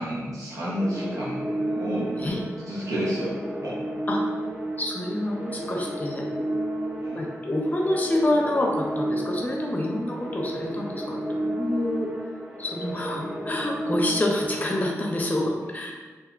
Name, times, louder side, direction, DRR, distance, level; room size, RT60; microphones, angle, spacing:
voice 1, 0.0-2.3 2.7-3.3 3.6-3.8 7.0-7.2, equal, 75° right, -7 dB, 1.0 m, -30 dB
sound 1, 0.8-15.2, right 1 dB, 20° right, 0.7 m, -32 dB
voice 2, 4.8-6.2 7.1-12.1 12.6-15.9, left 1 dB, 30° left, -1 dB, 0.7 m, -27 dB
2.6 x 2.2 x 3.7 m, 1.4 s
cardioid pair, 65°, 6 cm